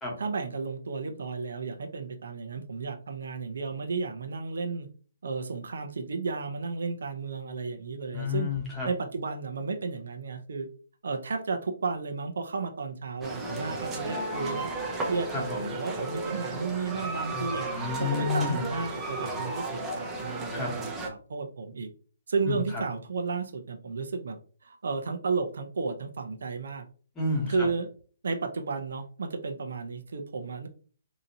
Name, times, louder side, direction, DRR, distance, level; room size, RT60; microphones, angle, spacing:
voice 1, 0.2-4.9 5.2-8.5 8.8-10.7 11.0-14.7 15.1-17.7 18.0-21.9 22.3-26.8 27.5-27.9 28.2-30.7, right 4 dB, 70° right, 5 dB, 0.6 m, -33 dB
voice 2, 8.1-8.9 15.3-15.7 17.7-18.7 20.5-20.7 22.5-22.8 27.1-27.7, left 4 dB, 10° left, -3 dB, 1.1 m, -30 dB
sound 1, 13.2-21.1, right 2 dB, 10° right, 0.5 m, -34 dB
4.0 x 2.7 x 2.7 m, 0.40 s
hypercardioid pair, 170°, 0 cm